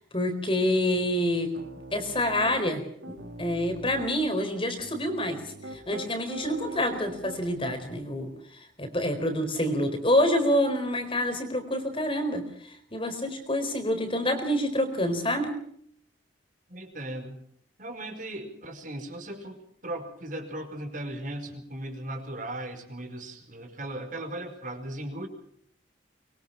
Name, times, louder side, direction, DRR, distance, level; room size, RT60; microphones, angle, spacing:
voice 1, 0.1-1.5 1.9-5.4 5.7-8.3 8.8-15.6, left 1 dB, 30° left, 7 dB, 4.3 m, -27 dB
Piano, 1.6-2.6 3.0-4.1 4.8-8.0, right 1 dB, 85° right, 3.8 m, -42 dB
voice 2, 16.7-17.4 17.8-25.3, right 1 dB, 45° right, 5 dB, 5.1 m, -37 dB
24.5 x 23.0 x 5.9 m, 0.66 s
head